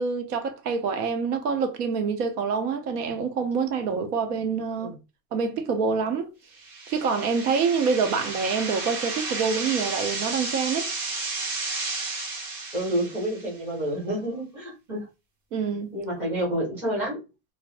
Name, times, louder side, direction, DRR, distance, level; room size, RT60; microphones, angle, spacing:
voice 1, 0.0-4.9 5.3-6.3 6.9-10.9 15.5-15.9, right 5 dB, 85° right, 0.9 m, -26 dB
sound 1, 6.6-13.5, right 3 dB, 35° right, 0.9 m, -32 dB
voice 2, 12.7-15.1 15.9-17.2, equal, 5° right, 0.4 m, -29 dB
2.7 x 2.0 x 3.1 m
supercardioid pair, 180°, 45 cm